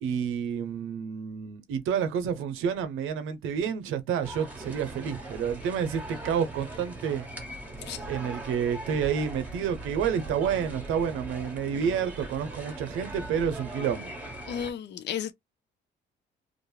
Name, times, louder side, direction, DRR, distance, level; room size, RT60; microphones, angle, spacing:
voice 1, 0.0-7.2 8.1-14.1, right 7 dB, 90° right, 0.6 m, -29 dB
sound 1, 4.2-14.7, right 2 dB, 5° right, 1.0 m, -40 dB
voice 2, 14.5-15.3, left 8 dB, 60° left, 0.5 m, -33 dB
2.5 x 2.2 x 3.0 m
cardioid pair, 90°, 20 cm